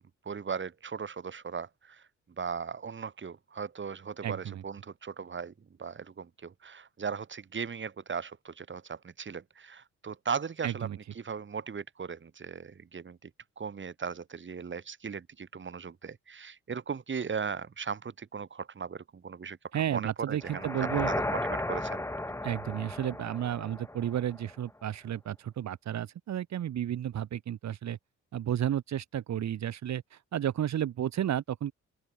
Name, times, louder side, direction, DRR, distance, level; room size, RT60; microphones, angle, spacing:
voice 1, 0.2-2.1 2.4-5.5 5.8-10.9 11.2-13.3 13.6-19.6 19.9-20.7 21.1-22.0, right 6 dB, 40° right, 4.4 m, -38 dB
voice 2, 4.2-4.6 10.6-11.0 19.7-21.1 22.4-28.0 28.3-31.7, right 10 dB, 65° right, 2.8 m, -32 dB
sound 1, 20.4-24.5, left 1 dB, 10° left, 2.2 m, -35 dB
open air
cardioid pair, 90°, 30 cm